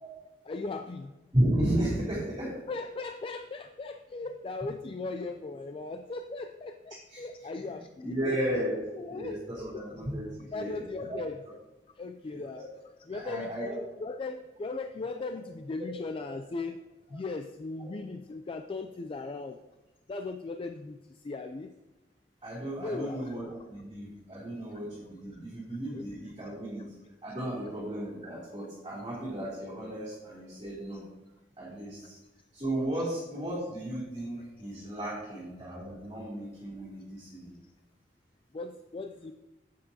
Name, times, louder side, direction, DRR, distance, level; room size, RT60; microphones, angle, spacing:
voice 1, 0.5-1.1 2.7-8.6 8.9-9.7 10.5-11.4 12.0-12.6 13.1-16.8 17.1-19.6 20.1-21.7 22.8-23.4 25.9-26.1 30.9-31.0 38.5-39.3, left 3 dB, 30° left, 7 dB, 0.3 m, -38 dB
voice 2, 1.3-2.6 7.1-7.2 8.0-11.2 12.3-12.6 13.1-13.8 22.4-26.9 27.2-31.0 31.6-32.2 32.5-37.5, right 1 dB, 25° right, -9 dB, 3.0 m, -34 dB
10.0 x 7.7 x 2.8 m, 1.0 s
head